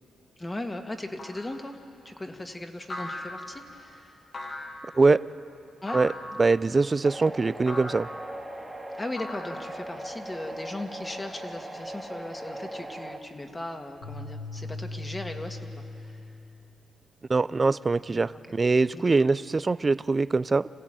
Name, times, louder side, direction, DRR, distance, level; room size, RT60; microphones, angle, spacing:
voice 1, 0.4-1.8 2.1-4.2 5.8-6.0 9.0-15.6 15.9-16.3 18.1-18.2, left 1 dB, 20° left, 5 dB, 1.8 m, -37 dB
sound 1, 1.2-1.6 2.9-3.7 4.3-4.9 5.9-6.4 7.7-8.2 9.2-9.9, left 1 dB, 45° left, 2.5 m, -38 dB
voice 2, 6.4-8.1 17.3-20.7, right 3 dB, 30° right, 17 dB, 0.5 m, -23 dB
sound 2, 7.0-13.2, right 1 dB, 10° right, 1.9 m, -39 dB
sound 3, 14.0-16.5, left 2 dB, 80° left, 6.9 m, -39 dB
26.5 x 16.0 x 9.0 m, 2.6 s
cardioid pair, 90°, 0 cm